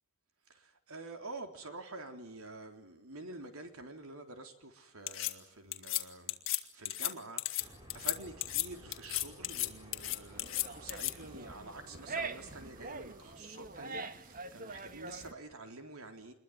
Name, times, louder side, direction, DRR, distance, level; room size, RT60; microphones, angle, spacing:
voice 1, 0.5-6.4 6.7-16.3, right 2 dB, 70° right, 3.9 m, -48 dB
sound 1, 5.1-5.3 5.7-6.0 6.3-6.6 6.9-7.1 7.4-7.6 7.9-8.1 8.4-8.7 8.9-9.7 9.9-11.1, left 15 dB, 60° left, 2.3 m, -33 dB
Jungle night dark voices atmo, 7.6-13.4, equal, 20° right, 6.7 m, -55 dB
sound 2, 10.3-15.3, right 3 dB, 40° right, 1.7 m, -44 dB
27.5 x 22.0 x 9.6 m
head